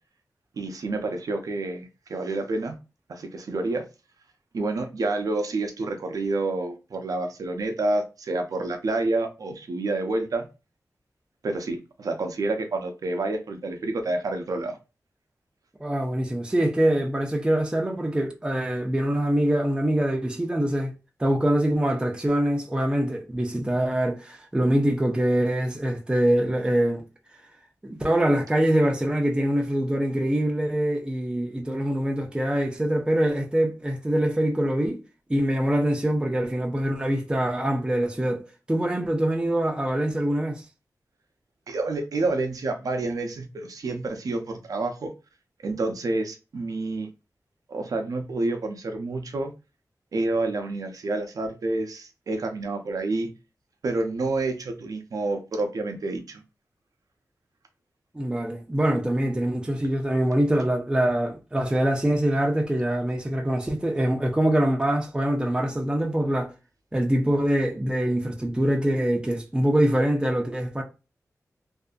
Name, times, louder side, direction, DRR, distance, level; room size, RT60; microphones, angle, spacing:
voice 1, 0.6-2.8 3.1-3.8 4.5-10.5 11.4-14.8 41.7-45.1 45.6-47.1 47.7-49.5 50.1-53.3 53.8-56.4, right 2 dB, 75° right, 0.5 m, -28 dB
voice 2, 15.8-20.9 21.2-27.0 27.8-35.0 35.3-40.7 58.1-66.5 66.9-70.8, right 1 dB, 15° right, 0.6 m, -24 dB
2.6 x 2.5 x 2.3 m
wide cardioid pair, 65°, 6 cm